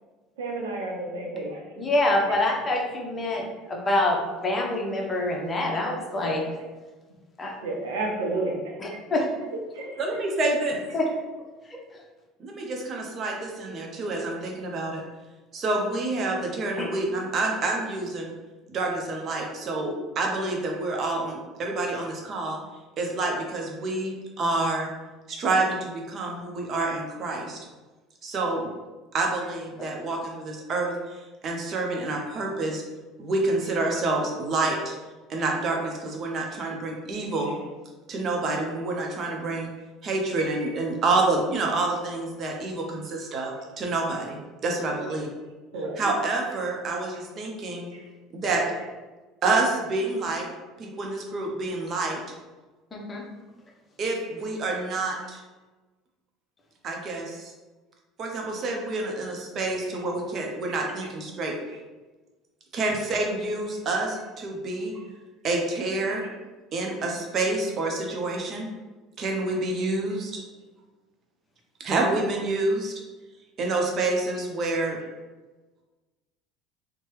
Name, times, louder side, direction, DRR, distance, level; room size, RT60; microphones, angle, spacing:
voice 1, 0.4-1.8 2.3-2.4 6.2-6.5 7.6-8.6 9.8-9.9 40.4-40.7 45.0-45.1 45.7-46.0 46.3-46.4 47.7-48.1 59.8-59.9 60.7-60.8 66.0-66.3, right 2 dB, 80° right, -1 dB, 0.6 m, -32 dB
voice 2, 1.8-4.2 4.4-6.4 7.4-7.5 8.8-9.2 10.9-11.0 11.7-11.8 16.8-16.9 29.8-29.9 52.9-53.2, left 2 dB, 30° left, 0 dB, 0.7 m, -26 dB
voice 3, 10.0-10.8 12.4-15.0 15.5-18.3 18.7-22.6 23.0-24.9 25.3-27.6 28.2-28.7 29.1-32.8 33.2-34.9 35.3-37.6 38.1-39.7 40.0-45.3 46.0-47.9 48.4-48.7 49.4-50.5 50.8-52.2 54.0-55.4 56.8-57.5 58.2-61.5 62.7-64.9 65.4-66.2 66.7-68.7 69.2-70.4 71.8-72.9 73.6-75.0, right 2 dB, 45° right, 1 dB, 0.7 m, -28 dB
2.9 x 2.2 x 3.1 m, 1.2 s
hypercardioid pair, 70°, 0 cm